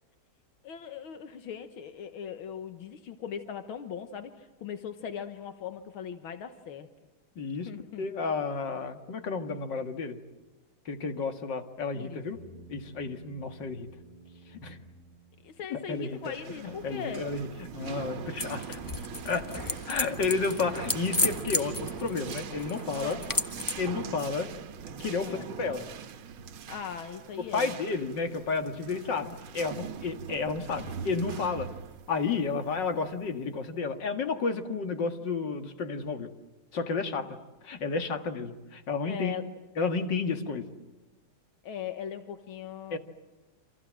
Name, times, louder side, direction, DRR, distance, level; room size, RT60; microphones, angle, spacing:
voice 1, 0.6-6.9 7.7-8.1 11.9-12.2 15.4-17.2 19.5-19.8 22.9-23.2 25.2-25.5 26.7-27.7 39.1-39.5 41.6-43.0, left 8 dB, 80° left, 8 dB, 2.1 m, -39 dB
voice 2, 7.4-7.7 8.0-10.2 10.9-12.4 12.7-13.9 14.5-14.8 15.7-18.8 19.2-19.5 19.9-23.2 23.8-24.5 25.0-25.9 27.5-31.7 32.1-36.3 36.7-37.4 37.6-39.4 39.8-40.7 42.9-43.0, left 4 dB, 60° left, 7 dB, 2.5 m, -31 dB
sound 1, 12.3-16.0, right 2 dB, 20° right, 3.9 m, -53 dB
sound 2, 16.1-33.5, right 7 dB, 90° right, 2.0 m, -42 dB
sound 3, 18.4-23.9, left 2 dB, 15° left, 0.8 m, -33 dB
28.5 x 26.5 x 7.6 m, 1.1 s
omnidirectional pair, 2.2 m